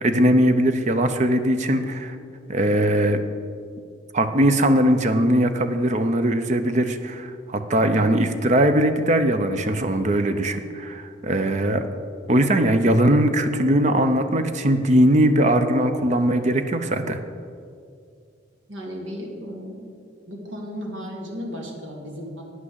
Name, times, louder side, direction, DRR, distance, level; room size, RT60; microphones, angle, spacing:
voice 1, 0.0-2.2 2.5-3.2 4.1-11.9 12.3-17.2, right 1 dB, 40° right, 8 dB, 0.6 m, -20 dB
voice 2, 18.7-19.9 20.3-22.4, equal, 85° right, 0 dB, 2.1 m, -34 dB
9.5 x 6.0 x 8.0 m, 2.3 s
head